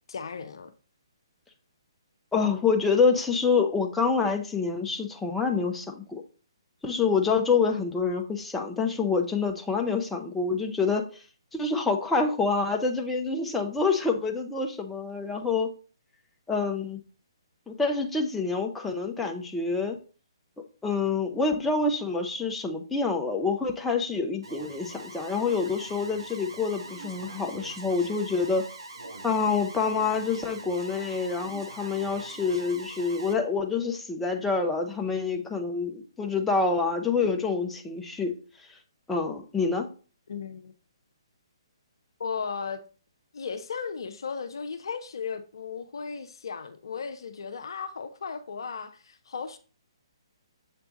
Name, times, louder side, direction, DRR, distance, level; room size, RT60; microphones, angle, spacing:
voice 1, 0.1-0.7 7.3-7.8 40.3-40.7 42.2-42.8 43.3-49.6, left 6 dB, 60° left, 0.7 m, -36 dB
voice 2, 2.3-6.2 6.8-11.0 11.5-15.7 16.5-17.0 17.7-20.0 20.8-28.7 29.2-38.3 39.1-39.9, left 4 dB, 5° left, 0.7 m, -27 dB
Alarm, 24.4-33.3, right 2 dB, 70° right, 1.1 m, -43 dB
7.1 x 3.4 x 3.9 m
figure-of-eight pair, 135°, 3 cm